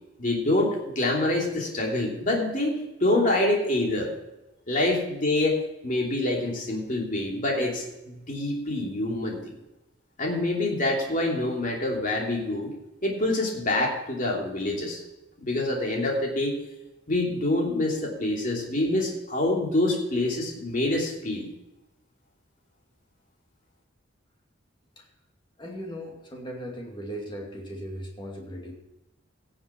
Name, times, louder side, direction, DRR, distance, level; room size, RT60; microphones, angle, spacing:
voice 1, 0.2-4.1 4.7-9.5 10.2-12.7 13.0-15.0 15.4-16.6 17.1-21.5, left 1 dB, 40° left, -1 dB, 3.0 m, -26 dB
voice 2, 25.6-28.7, equal, 25° left, 0 dB, 2.4 m, -38 dB
17.0 x 7.3 x 4.6 m, 0.98 s
head